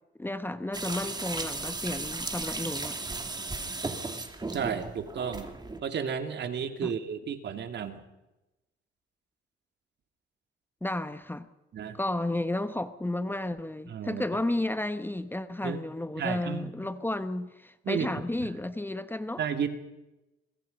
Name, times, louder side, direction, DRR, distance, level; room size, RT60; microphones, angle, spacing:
voice 1, 0.2-3.0 6.8-6.9 10.8-11.5 11.9-19.4, left 1 dB, 10° left, 1.1 m, -32 dB
sound 1, 0.7-5.8, right 3 dB, 20° right, 2.6 m, -35 dB
voice 2, 4.5-5.5 5.8-8.0 11.7-12.0 13.9-14.2 15.6-15.8 16.2-16.7 17.8-18.1 18.4-18.5 19.4-19.7, right 7 dB, 60° right, 2.5 m, -32 dB
25.5 x 22.0 x 5.4 m
cardioid pair, 90°, 20 cm